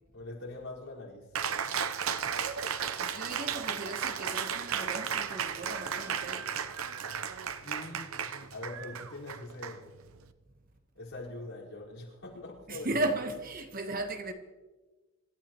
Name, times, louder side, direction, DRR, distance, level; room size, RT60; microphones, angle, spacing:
voice 1, 0.1-1.3 7.5-9.9 10.9-13.1 13.9-14.0, left 2 dB, 70° left, 4.9 m, -43 dB
Cheering, 1.3-10.3, right 7 dB, 80° right, 0.8 m, -35 dB
voice 2, 3.0-6.5 12.7-14.3, right 2 dB, 40° right, 1.2 m, -36 dB
26.0 x 13.5 x 3.1 m
head